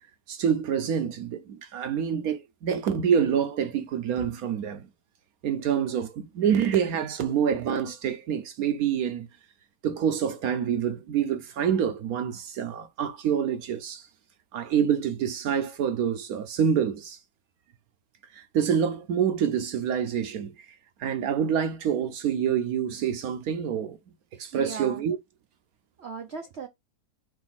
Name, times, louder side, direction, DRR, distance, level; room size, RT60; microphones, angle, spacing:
voice 1, 0.3-4.9 5.4-9.3 9.8-14.1 14.5-17.2 18.3-20.5 21.0-24.0 24.3-25.2, right 8 dB, 65° right, 0.9 m, -27 dB
voice 2, 24.5-25.0 26.0-26.7, right 6 dB, 85° right, 0.5 m, -37 dB
5.1 x 2.6 x 4.0 m
omnidirectional pair, 2.0 m